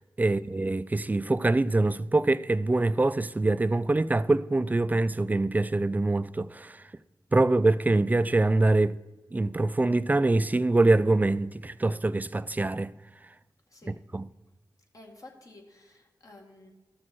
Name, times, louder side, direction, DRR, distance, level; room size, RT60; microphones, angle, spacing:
voice 1, 0.0-6.8 7.3-9.0 9.3-12.9 13.9-14.2, right 2 dB, 20° right, 0.4 m, -24 dB
voice 2, 14.9-16.7, left 2 dB, 50° left, 2.0 m, -51 dB
13.5 x 6.3 x 4.3 m
cardioid pair, 50°, 7 cm